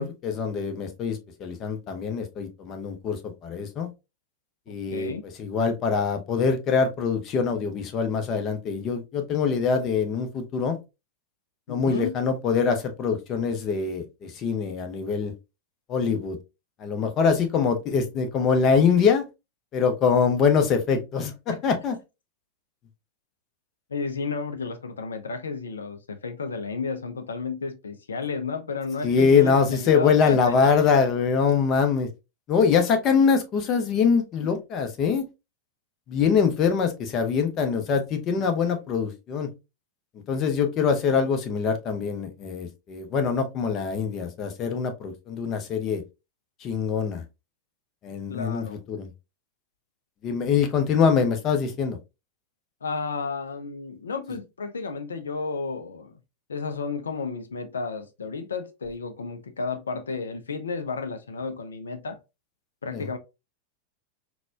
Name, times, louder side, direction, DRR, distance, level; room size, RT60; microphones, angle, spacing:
voice 1, 0.0-3.9 4.7-5.1 5.4-10.8 11.7-15.3 15.9-16.4 16.8-19.2 19.7-22.0 29.0-32.1 32.5-35.2 36.1-39.5 40.3-46.0 46.6-47.2 48.0-49.1 50.2-52.0 62.9-63.1, left 6 dB, 35° left, 0.7 m, -24 dB
voice 2, 4.7-5.2 11.7-12.1 21.5-21.6 23.9-30.6 48.3-48.8 52.8-56.1 56.5-62.2 62.8-63.2, left 4 dB, 70° left, 0.4 m, -32 dB
4.0 x 2.2 x 2.6 m
figure-of-eight pair, 90°, 0 cm